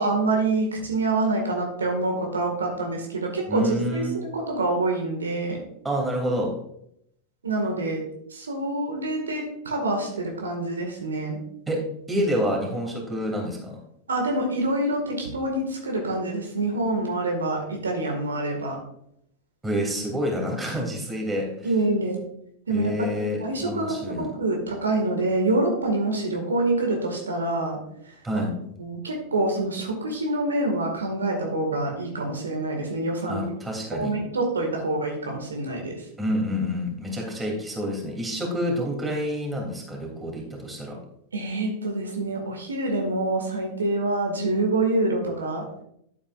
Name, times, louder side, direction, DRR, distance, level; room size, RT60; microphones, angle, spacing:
voice 1, 0.0-5.6 7.4-8.0 8.3-11.4 14.1-18.8 21.6-22.2 22.7-23.1 23.4-27.8 28.8-33.4 33.9-36.0 41.3-45.6, right 2 dB, 70° right, 1 dB, 1.9 m, -26 dB
voice 2, 3.5-4.1 5.8-6.5 11.7-11.8 12.1-13.8 19.6-21.7 22.7-24.3 28.2-28.5 33.3-34.1 36.2-41.0, equal, 10° right, -1 dB, 3.1 m, -28 dB
11.5 x 8.5 x 2.5 m, 0.72 s
figure-of-eight pair, 90°, 0 cm